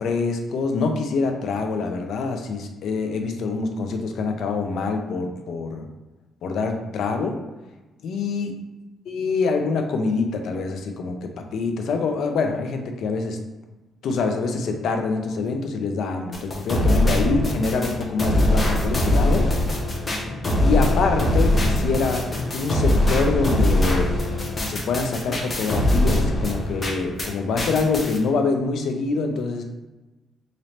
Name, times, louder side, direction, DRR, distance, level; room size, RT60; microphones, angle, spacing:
voice 1, 0.0-5.9 6.4-7.4 8.0-8.5 9.1-13.4 14.0-19.5 20.6-22.3 22.5-24.1 24.6-29.6, left 4 dB, 70° left, 5 dB, 0.5 m, -25 dB
sound 1, 16.3-27.3 27.6-28.2, left 1 dB, 30° left, 0.8 m, -22 dB
4.0 x 2.6 x 3.2 m, 1.1 s
cardioid pair, 90°, 0 cm